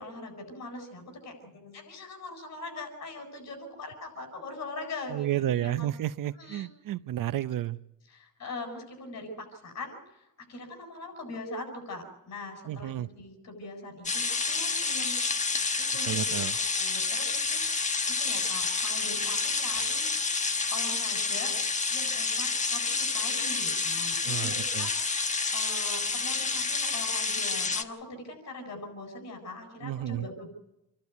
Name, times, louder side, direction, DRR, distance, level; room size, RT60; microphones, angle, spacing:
voice 1, 0.0-5.9 6.4-6.7 8.1-15.7 15.9-17.9 18.2-20.1 20.7-21.5 21.9-24.9 25.5-30.5, left 2 dB, 50° left, 5 dB, 7.9 m, -42 dB
voice 2, 5.1-7.8 12.7-13.1 16.0-16.6 24.3-24.9 29.8-30.3, right 12 dB, 65° right, 16 dB, 0.7 m, -31 dB
sound 1, 14.0-27.8, left 4 dB, 20° left, 1.3 m, -29 dB
28.5 x 12.0 x 9.5 m, 0.89 s
cardioid pair, 155°, 35 cm